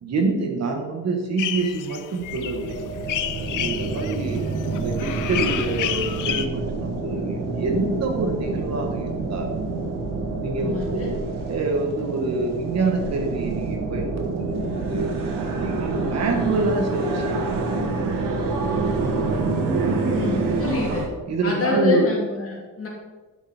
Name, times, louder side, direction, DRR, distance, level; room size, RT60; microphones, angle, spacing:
voice 1, 0.0-2.8 3.4-4.4 4.7-9.5 10.4-11.1 11.5-15.1 15.6-18.0 20.9-21.0 21.3-22.1, right 3 dB, 50° right, 3 dB, 1.6 m, -26 dB
sound 1, 1.4-6.5, left 11 dB, 70° left, 0.7 m, -30 dB
sound 2, 2.1-21.1, right 3 dB, 85° right, 1.7 m, -27 dB
voice 2, 10.6-11.2 20.1-21.0 21.4-22.9, left 4 dB, 45° left, -2 dB, 2.8 m, -26 dB
11.5 x 6.5 x 4.4 m, 1.2 s
cardioid pair, 145°, 32 cm